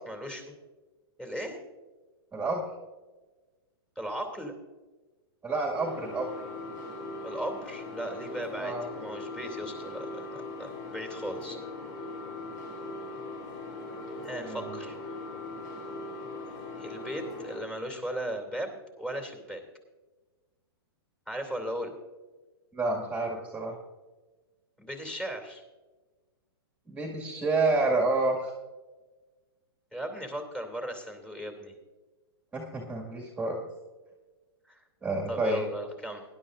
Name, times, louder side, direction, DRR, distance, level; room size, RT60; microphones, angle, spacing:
voice 1, 0.1-0.4 1.2-1.6 4.0-4.5 7.2-11.6 14.2-15.2 16.7-19.6 21.3-22.0 24.8-25.6 29.9-31.7 34.7-34.8 35.3-36.2, right 1 dB, 5° left, 3 dB, 2.6 m, -37 dB
voice 2, 2.3-2.7 5.4-6.3 8.6-8.8 14.4-14.8 22.7-23.7 26.9-28.5 32.5-33.7 35.0-35.6, right 2 dB, 10° right, -1 dB, 1.9 m, -29 dB
sound 1, 5.7-17.6, left 2 dB, 55° left, 3.1 m, -40 dB
19.5 x 11.5 x 2.5 m, 1.2 s
hypercardioid pair, 130°, 13 cm